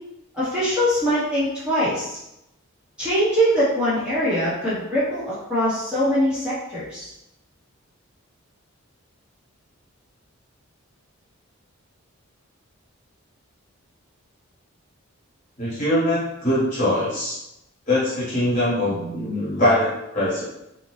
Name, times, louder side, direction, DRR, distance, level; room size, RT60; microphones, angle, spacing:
voice 1, 0.3-2.2 3.0-7.1, equal, 5° right, -12 dB, 0.8 m, -22 dB
voice 2, 15.6-17.4 17.9-20.4, left 1 dB, 35° left, -9 dB, 1.1 m, -22 dB
2.7 x 2.1 x 3.1 m, 0.86 s
head